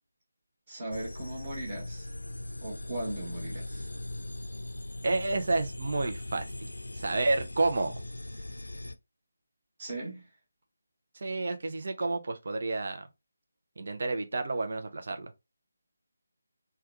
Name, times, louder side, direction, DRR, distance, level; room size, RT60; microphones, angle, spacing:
voice 1, 0.7-2.1 2.6-3.9 9.8-10.3, right 1 dB, 35° right, 1.3 m, -38 dB
sound 1, 0.9-8.9, left 1 dB, 80° left, 0.5 m, -40 dB
voice 2, 5.0-6.7 6.9-8.0 11.1-13.1 13.8-15.3, right 2 dB, 50° right, 0.6 m, -30 dB
3.4 x 2.3 x 2.8 m
figure-of-eight pair, 155°, 0 cm